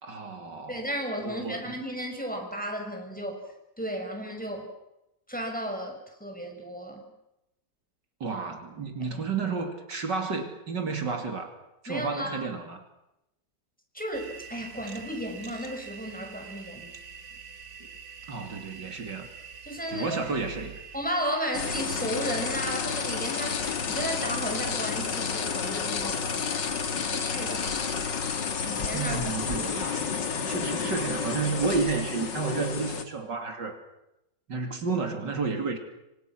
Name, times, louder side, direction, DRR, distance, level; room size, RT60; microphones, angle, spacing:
voice 1, 0.0-0.9 1.2-1.8 8.2-11.5 11.8-12.8 18.3-19.3 19.9-20.8 28.9-30.0 30.5-33.8 34.5-35.8, right 4 dB, 75° right, 5 dB, 3.5 m, -31 dB
voice 2, 0.7-4.7 5.3-7.0 9.1-9.2 11.9-12.5 13.9-16.9 19.7-20.2 20.9-23.6 23.9-26.5 27.1-28.1 28.6-29.2, equal, 5° left, 2 dB, 6.2 m, -34 dB
sound 1, 14.1-25.6, right 6 dB, 55° right, 3.0 m, -47 dB
sound 2, 21.5-33.0, left 6 dB, 80° left, 2.5 m, -30 dB
29.5 x 25.0 x 6.2 m, 0.89 s
omnidirectional pair, 1.9 m